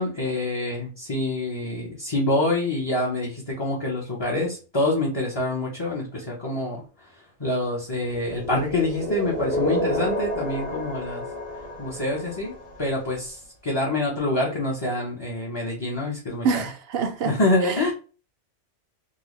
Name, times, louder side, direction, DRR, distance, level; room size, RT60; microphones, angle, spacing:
voice 1, 0.0-6.8 7.4-11.2 11.8-12.5 12.8-16.6 17.3-17.9, left 2 dB, 25° left, 0.8 m, -26 dB
sound 1, 8.1-13.1, equal, 45° left, 1.5 m, -30 dB
voice 2, 16.4-17.3 17.6-17.8, right 5 dB, 65° right, 0.7 m, -26 dB
3.9 x 2.3 x 3.1 m
omnidirectional pair, 1.2 m